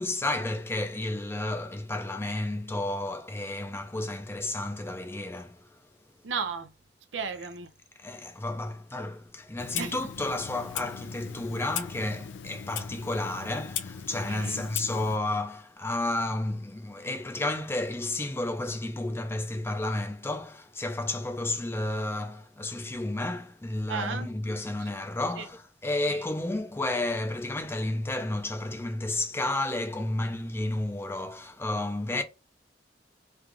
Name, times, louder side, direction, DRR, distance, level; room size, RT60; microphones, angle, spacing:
voice 1, 0.0-5.8 8.0-32.2, left 2 dB, 15° left, 0.5 m, -32 dB
voice 2, 6.2-6.7 7.1-7.7 9.8-9.9 14.3-14.6 23.9-24.3 24.8-24.9 25.4-25.5 26.1-26.2, right 5 dB, 85° right, 0.5 m, -34 dB
Clock, 9.6-15.2, left 8 dB, 80° left, 0.4 m, -38 dB
3.3 x 2.4 x 3.6 m
head